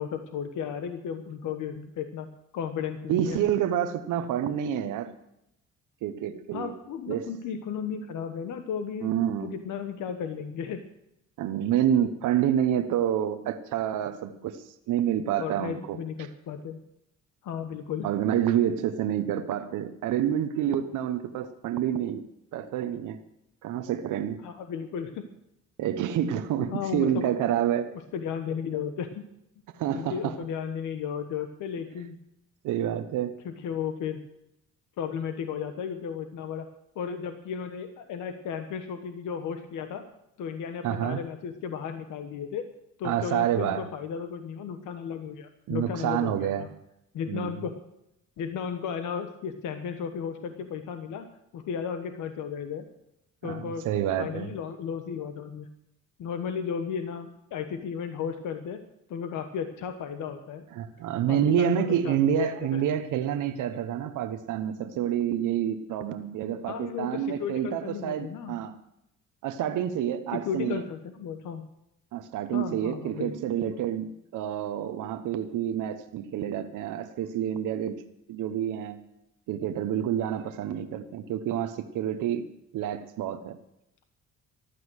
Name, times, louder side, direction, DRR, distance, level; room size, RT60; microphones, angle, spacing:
voice 1, 0.0-2.3 2.5-3.4 6.5-9.1 9.4-10.8 15.4-16.8 17.4-18.1 24.4-25.2 26.7-27.5 28.1-29.2 29.9-32.2 33.4-34.2 35.0-36.7 36.9-40.0 40.4-42.6 43.0-46.7 47.1-47.7 48.4-51.3 51.5-52.9 53.4-53.9 54.2-55.7 56.2-58.8 59.1-60.6 61.3-62.8 66.7-68.6 70.3-71.7 72.5-73.3, left 7 dB, 80° left, 7 dB, 1.3 m, -34 dB
voice 2, 3.1-5.1 6.0-6.7 7.1-7.3 9.0-9.6 11.4-16.0 18.0-22.2 22.5-23.2 23.6-24.4 25.8-27.9 29.7-30.4 32.6-33.3 40.8-41.2 43.0-43.9 45.7-46.7 47.3-47.6 53.4-54.5 60.7-68.8 69.4-70.8 72.1-78.0 78.3-79.0 79.5-82.5 82.7-83.6, right 10 dB, 85° right, 9 dB, 1.0 m, -28 dB
15.0 x 11.5 x 6.4 m, 0.83 s
cardioid pair, 90°, 30 cm